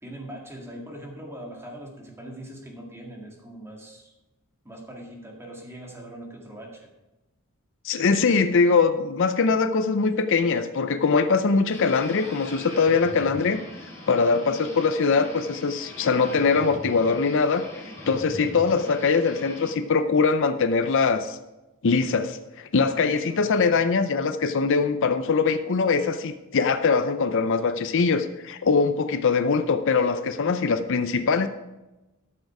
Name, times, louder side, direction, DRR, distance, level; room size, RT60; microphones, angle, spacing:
voice 1, 0.0-4.1 4.6-6.9 18.7-18.8 23.3-23.9, right 1 dB, 10° right, 0 dB, 1.9 m, -41 dB
voice 2, 7.8-13.6 14.1-17.6 18.1-21.4 21.8-31.5, left 4 dB, 55° left, 10 dB, 0.5 m, -22 dB
sound 1, 11.7-19.7, left 1 dB, 10° left, 3.2 m, -41 dB
13.0 x 6.6 x 4.8 m, 1.0 s
head